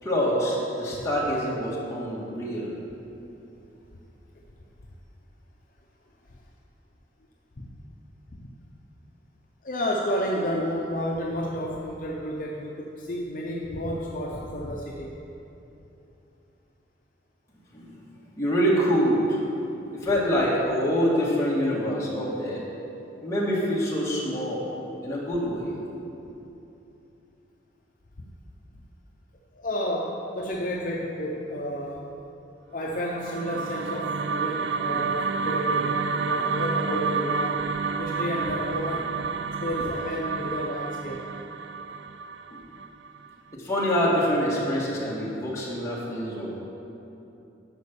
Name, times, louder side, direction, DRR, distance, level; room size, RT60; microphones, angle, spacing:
voice 1, 0.0-2.8 17.7-19.4 19.9-22.6 23.2-24.7 25.0-25.7 42.5-42.6 43.5-46.6, equal, 15° left, -6 dB, 1.8 m, -26 dB
voice 2, 9.6-15.1 28.2-28.3 29.6-32.1 32.7-37.6 38.0-39.2 39.6-41.3, equal, 45° left, -2 dB, 0.7 m, -31 dB
sound 1, 32.9-43.2, right 5 dB, 65° right, 0.4 m, -29 dB
11.0 x 5.3 x 7.1 m, 2.9 s
head